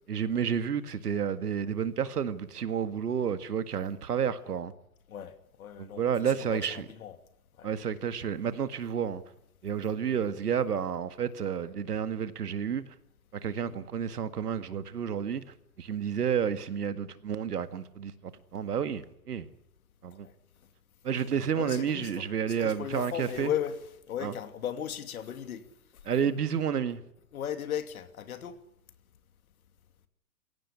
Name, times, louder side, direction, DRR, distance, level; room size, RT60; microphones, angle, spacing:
voice 1, 0.1-4.7 5.8-6.9 7.6-9.2 9.6-12.9 13.3-19.5 20.0-20.3 21.0-23.5 24.2-24.3 26.1-27.0, right 7 dB, 75° right, 2.0 m, -30 dB
voice 2, 5.6-7.2 7.6-7.7 10.0-10.2 20.2-20.3 21.5-23.8 24.1-25.6 27.3-28.6, left 10 dB, 60° left, 2.9 m, -36 dB
22.5 x 17.0 x 10.0 m
hypercardioid pair, 120°, 47 cm